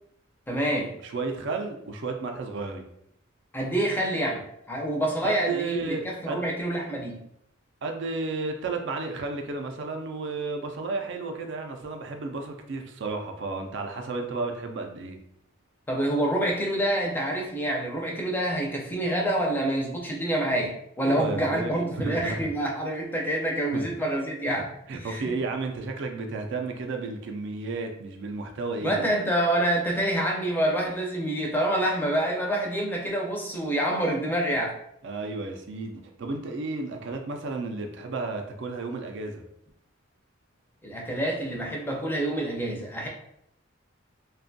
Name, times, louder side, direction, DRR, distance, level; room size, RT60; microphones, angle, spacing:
voice 1, 0.5-0.9 3.5-7.2 15.9-24.7 25.0-25.3 28.8-34.7 40.8-43.1, right 1 dB, 10° left, -1 dB, 0.4 m, -27 dB
voice 2, 1.0-2.9 5.2-6.5 7.8-15.2 21.0-22.4 23.7-23.8 24.5-24.6 24.9-29.0 35.0-39.4, right 3 dB, 65° right, 4 dB, 0.4 m, -32 dB
2.5 x 2.2 x 2.5 m, 0.74 s
head